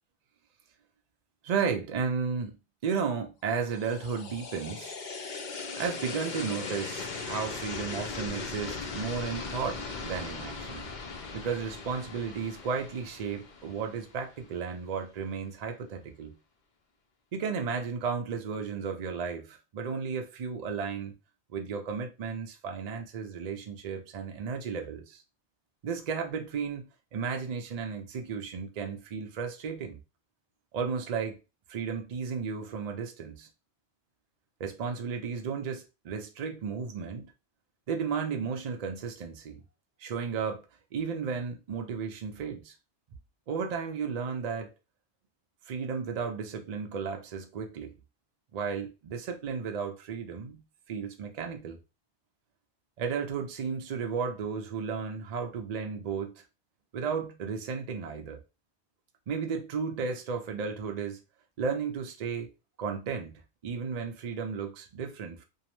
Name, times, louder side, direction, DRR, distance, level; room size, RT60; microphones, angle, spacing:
voice 1, 1.4-2.6 2.8-4.9 5.8-10.9 11.3-16.3 17.3-21.1 21.5-25.2 25.8-30.0 30.7-31.4 31.7-33.5 34.6-37.3 37.9-39.6 40.0-40.6 40.9-42.7 43.5-44.7 45.7-47.9 48.5-50.6 50.9-51.8 53.0-56.3 56.9-58.4 59.3-61.2 61.6-62.5 62.8-65.4, right 6 dB, 60° right, 0.4 m, -34 dB
sound 1, 3.5-14.6, left 4 dB, 55° left, 0.5 m, -39 dB
2.7 x 2.0 x 2.9 m
omnidirectional pair, 1.2 m